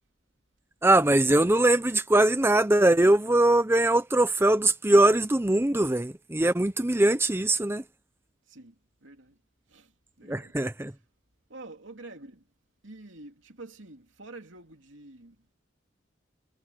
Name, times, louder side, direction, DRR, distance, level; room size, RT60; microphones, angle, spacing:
voice 1, 0.8-7.8 10.3-10.9, right 1 dB, 10° right, 0.6 m, -22 dB
voice 2, 9.0-9.4 9.7-9.9 10.2-10.6 11.5-12.4 12.8-15.4, right 2 dB, 75° right, 2.8 m, -47 dB
head